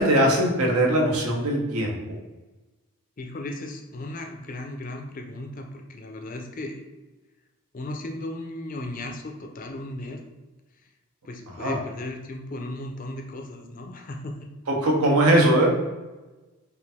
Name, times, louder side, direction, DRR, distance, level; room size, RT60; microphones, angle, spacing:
voice 1, 0.0-2.2 11.6-11.8 14.7-15.7, right 1 dB, 85° right, 0 dB, 1.0 m, -21 dB
voice 2, 3.2-6.8 7.7-10.2 11.3-14.4, left 1 dB, 35° left, 3 dB, 0.5 m, -36 dB
4.9 x 2.6 x 3.5 m, 1.1 s
head